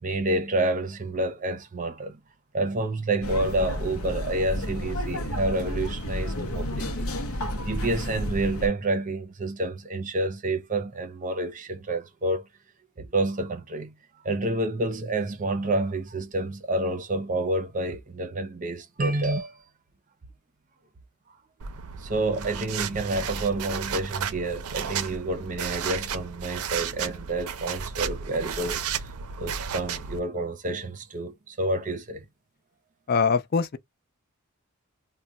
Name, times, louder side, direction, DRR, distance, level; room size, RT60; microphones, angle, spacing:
voice 1, 0.0-2.2 2.5-7.1 7.6-12.5 13.0-13.9 14.2-19.6 21.3-21.4 22.0-29.1 29.4-32.2, right 2 dB, 35° right, 0.6 m, -29 dB
sound 1, 3.2-8.7, equal, 75° left, 0.7 m, -31 dB
sound 2, 21.6-30.2, right 7 dB, 85° right, 0.5 m, -33 dB
voice 2, 33.1-33.8, left 5 dB, 45° left, 0.4 m, -23 dB
2.3 x 2.1 x 3.8 m
head